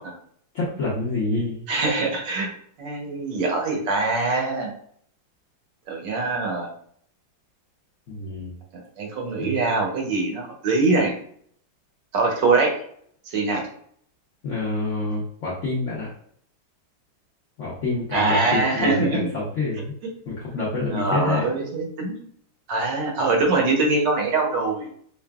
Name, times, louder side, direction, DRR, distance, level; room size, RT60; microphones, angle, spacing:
voice 1, 0.5-1.6 8.1-8.5 9.4-9.5 14.4-16.1 17.6-19.9 20.3-21.4, left 3 dB, 65° left, -6 dB, 0.7 m, -27 dB
voice 2, 1.7-2.5 2.8-4.7 5.9-6.7 8.7-11.1 12.1-12.7 13.2-13.6 18.1-19.3 20.9-22.1 22.7-24.9, right 3 dB, 70° right, 0 dB, 1.3 m, -23 dB
5.4 x 2.2 x 2.3 m, 0.63 s
omnidirectional pair, 2.2 m